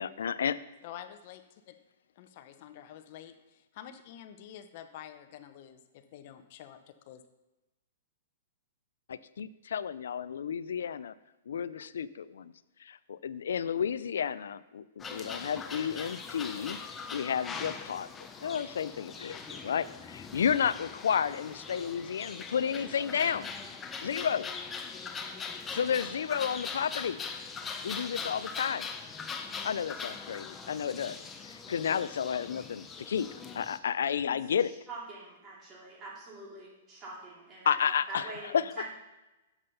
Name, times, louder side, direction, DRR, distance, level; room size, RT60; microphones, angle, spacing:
voice 1, 0.0-0.6 9.1-11.1 11.5-12.5 12.8-16.8 17.1-18.1 18.4-23.5 24.0-24.5 25.7-27.2 27.8-28.9 29.6-31.2 31.7-33.3 33.6-34.7 37.7-38.3 38.5-38.9, left 7 dB, 80° left, 16 dB, 0.4 m, -31 dB
voice 2, 0.8-1.8 2.2-7.2, left 10 dB, 50° left, 9 dB, 0.7 m, -48 dB
sound 1, 15.0-33.8, left 5 dB, 15° left, 0.7 m, -41 dB
voice 3, 34.3-38.9, right 3 dB, 30° right, -4 dB, 3.1 m, -45 dB
7.3 x 5.3 x 5.5 m, 1.0 s
hypercardioid pair, 135°, 0 cm